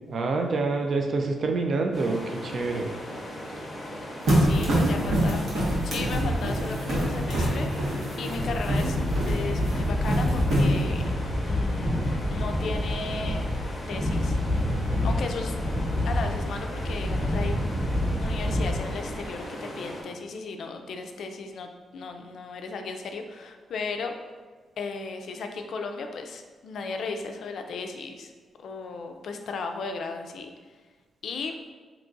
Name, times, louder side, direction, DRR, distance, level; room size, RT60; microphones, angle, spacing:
voice 1, 0.1-2.9 4.9-5.1, right 3 dB, 50° right, 3 dB, 0.3 m, -27 dB
sound 1, 1.9-20.0, equal, 30° left, 0.6 m, -38 dB
voice 2, 4.3-5.4 5.8-7.7 8.2-9.0 9.3-11.0 11.5-13.4 13.9-14.4 15.0-15.5 16.1-17.6 18.2-24.1 24.8-28.3 28.6-30.5 31.2-31.5, left 4 dB, 65° left, 5 dB, 0.3 m, -35 dB
sound 2, 4.3-11.0, equal, 70° right, 1.0 m, -25 dB
sound 3, 8.3-19.4, left 1 dB, 5° left, 0.9 m, -28 dB
2.9 x 2.3 x 3.8 m, 1.4 s
wide cardioid pair, 140°, 0 cm